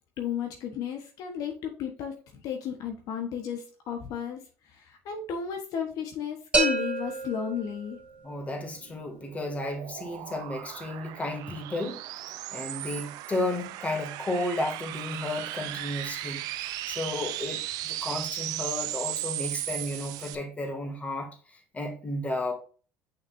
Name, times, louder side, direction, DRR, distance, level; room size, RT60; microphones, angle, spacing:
voice 1, 0.2-4.4 4.7-8.0, left 8 dB, 65° left, 1.2 m, -33 dB
sound 1, 6.5-8.4, right 3 dB, 15° right, 2.4 m, -29 dB
voice 2, 8.2-12.2 12.5-22.5, left 1 dB, 20° left, 2.3 m, -33 dB
sound 2, 8.8-20.4, right 14 dB, 70° right, 0.6 m, -36 dB
6.5 x 6.0 x 2.7 m
supercardioid pair, 95°, 7 cm